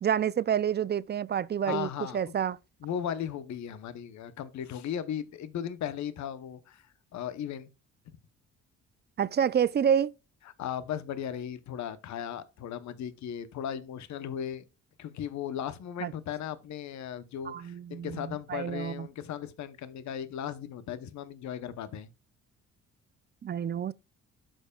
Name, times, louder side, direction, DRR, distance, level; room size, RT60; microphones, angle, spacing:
voice 1, 0.0-2.6 9.2-10.1 16.0-16.1 17.5-19.1 23.4-23.9, right 8 dB, 35° right, 0.4 m, -28 dB
voice 2, 1.7-2.3 2.8-6.8 7.1-7.7 10.6-14.6 15.0-22.1, left 9 dB, 65° left, 0.9 m, -36 dB
12.5 x 4.5 x 2.3 m
cardioid pair, 90°, 30 cm